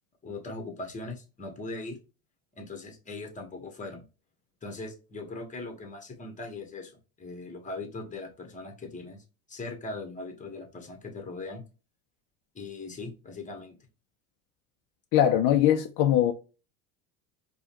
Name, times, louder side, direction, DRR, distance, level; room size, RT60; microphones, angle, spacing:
voice 1, 0.2-2.0 2.5-4.0 4.6-6.9 7.2-11.6 12.5-13.8, left 3 dB, 20° left, 1.2 m, -40 dB
voice 2, 15.1-16.3, left 11 dB, 55° left, 0.6 m, -21 dB
4.8 x 2.4 x 2.9 m
supercardioid pair, 100°, 37 cm